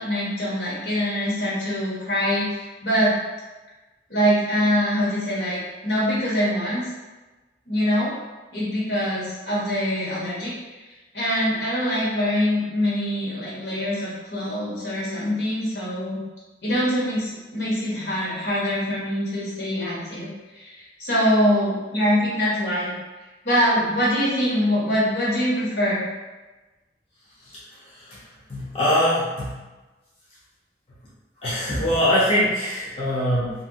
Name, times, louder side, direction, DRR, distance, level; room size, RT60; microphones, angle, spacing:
voice 1, 0.0-3.1 4.1-6.9 7.7-8.1 8.5-10.5 11.1-16.2 16.6-22.9 23.4-26.0, equal, 75° left, -7 dB, 1.2 m, -24 dB
voice 2, 28.5-29.5 31.4-33.5, equal, 35° left, -8 dB, 0.6 m, -22 dB
2.7 x 2.6 x 2.7 m, 1.2 s
head